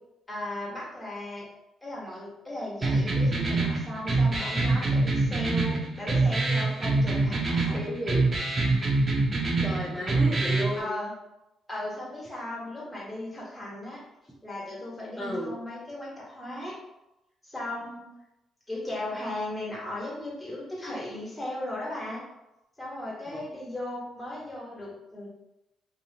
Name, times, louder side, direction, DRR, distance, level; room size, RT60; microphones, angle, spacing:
voice 1, 0.3-1.5 1.8-7.8 10.7-11.1 11.7-14.0 14.4-16.7 17.4-18.1 18.7-22.2 22.8-25.3, left 1 dB, 20° left, -6 dB, 1.3 m, -36 dB
sound 1, 2.8-10.8, right 3 dB, 35° right, 0.6 m, -25 dB
voice 2, 7.7-8.3 9.6-10.9 15.2-15.6 23.3-23.4, equal, 5° left, -7 dB, 0.6 m, -32 dB
2.7 x 2.4 x 2.8 m, 0.92 s
cardioid pair, 90°, 0 cm